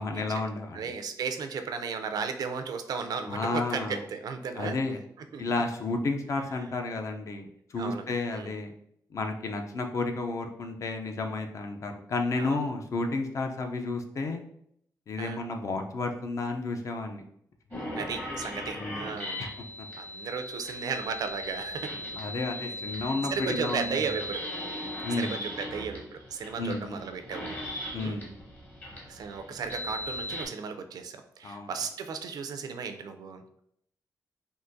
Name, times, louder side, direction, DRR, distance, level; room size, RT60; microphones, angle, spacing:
voice 1, 0.0-0.9 3.3-4.0 4.6-5.0 5.4-8.7 9.1-14.4 15.1-17.2 18.8-19.1 19.4-19.5 22.2-24.1 25.0-25.3 26.6-27.0 27.9-28.3 31.4-31.7, left 3 dB, 50° left, 5 dB, 0.4 m, -32 dB
voice 2, 0.7-4.8 5.3-5.4 7.8-8.0 8.3-8.5 12.4-12.6 15.2-15.4 18.0-19.4 20.0-22.1 22.9-24.4 25.1-27.5 27.9-28.2 29.1-33.4, right 6 dB, 70° right, 8 dB, 0.4 m, -35 dB
sound 1, 17.7-30.5, left 1 dB, 30° left, 0.8 m, -38 dB
3.6 x 2.5 x 2.6 m, 0.70 s
wide cardioid pair, 150°, 7 cm